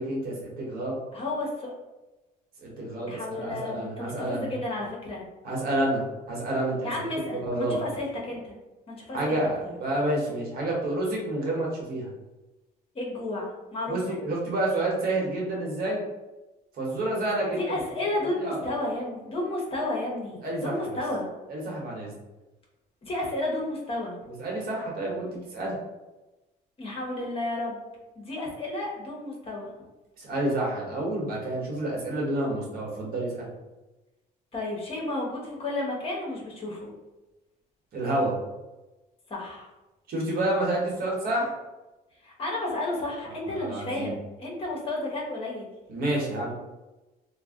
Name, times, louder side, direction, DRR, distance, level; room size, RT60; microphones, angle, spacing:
voice 1, 0.0-1.0 2.6-4.5 5.4-6.9 7.3-7.8 9.1-12.1 13.9-16.0 16.8-17.6 18.2-18.6 20.4-21.0 21.5-22.1 24.4-25.8 30.2-33.5 37.9-38.3 40.1-41.5 43.5-44.1 45.9-46.5, right 1 dB, 60° right, -3 dB, 1.0 m, -29 dB
voice 2, 1.1-1.7 3.1-5.3 6.8-8.5 8.9-9.4 9.6-9.7 12.9-14.2 17.6-21.3 23.0-24.2 26.8-27.8 28.2-29.7 34.5-36.9 39.3-39.7 42.2-45.7, left 2 dB, 35° left, -2 dB, 0.9 m, -32 dB
2.4 x 2.1 x 3.5 m, 1.1 s
cardioid pair, 110°, 17 cm